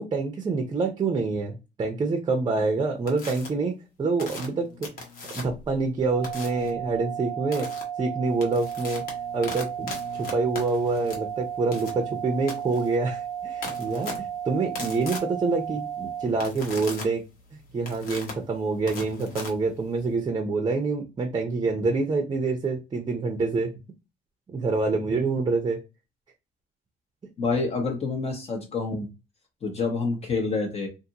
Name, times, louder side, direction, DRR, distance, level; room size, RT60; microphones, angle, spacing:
voice 1, 0.0-4.9 5.3-7.7 8.0-9.0 9.3-17.2 17.7-23.7 24.5-25.8, right 3 dB, 25° right, 4 dB, 0.6 m, -26 dB
sound 1, 3.1-3.5 4.2-5.7 6.2-6.7 7.5-7.8 8.2-20.1, left 3 dB, 60° left, 1.1 m, -39 dB
sound 2, 6.1-16.3, right 9 dB, 75° right, 0.4 m, -34 dB
voice 2, 27.4-29.1 29.6-30.9, left 4 dB, 40° left, 2 dB, 0.9 m, -27 dB
2.6 x 2.5 x 2.8 m, 0.27 s
cardioid pair, 110°, 17 cm